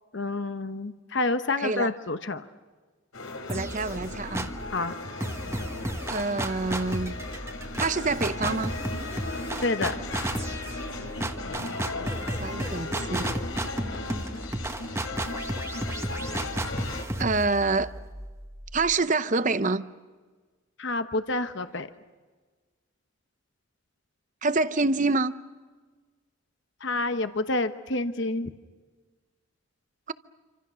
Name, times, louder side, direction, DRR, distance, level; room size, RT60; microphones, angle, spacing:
voice 1, 0.1-2.4 4.7-4.9 9.6-10.0 20.8-21.9 26.8-28.5, left 2 dB, 55° left, 1.0 m, -28 dB
voice 2, 1.6-1.9 3.5-4.5 6.1-7.2 7.8-8.7 12.4-13.3 17.2-17.9 18.7-19.8 24.4-25.3 30.1-30.2, right 3 dB, 35° right, 0.8 m, -26 dB
sound 1, 3.1-17.0, left 2 dB, 75° left, 3.7 m, -37 dB
sound 2, 3.5-4.7 5.2-18.9, right 1 dB, 15° right, 1.3 m, -33 dB
27.5 x 26.0 x 6.3 m
head